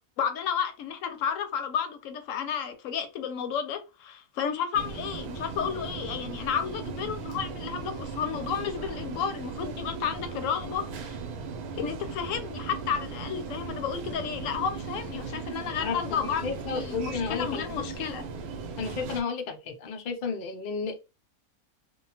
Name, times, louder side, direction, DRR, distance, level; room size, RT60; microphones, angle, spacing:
voice 1, 0.2-11.2 11.8-18.2, left 7 dB, 70° left, 0.9 m, -32 dB
sound 1, 4.7-19.2, right 5 dB, 80° right, 1.1 m, -37 dB
voice 2, 15.8-17.6 18.8-21.0, left 5 dB, 90° left, 0.4 m, -32 dB
2.7 x 2.2 x 2.7 m
omnidirectional pair, 1.6 m